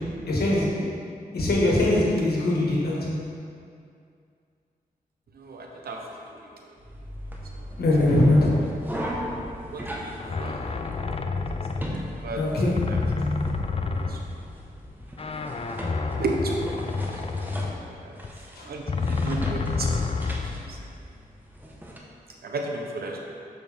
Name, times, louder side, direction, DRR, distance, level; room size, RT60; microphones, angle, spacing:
voice 1, 0.3-0.8 1.3-3.0 7.8-8.5 12.4-12.8 18.5-18.7, left 1 dB, 90° left, -4 dB, 1.5 m, -21 dB
voice 2, 5.3-6.3 9.7-10.7 11.7-12.4 12.9-13.0 14.1-14.4 16.1-18.2 18.7-20.1 20.5-20.9 22.4-23.2, right 2 dB, 80° right, 1 dB, 0.9 m, -34 dB
sound 1, 6.8-22.0, equal, 10° right, 1.1 m, -38 dB
sound 2, 10.2-12.4 12.8-14.6 15.1-18.4 18.9-20.8, left 4 dB, 40° left, 0.5 m, -29 dB
7.0 x 6.0 x 3.4 m, 2.4 s
cardioid pair, 65°, 16 cm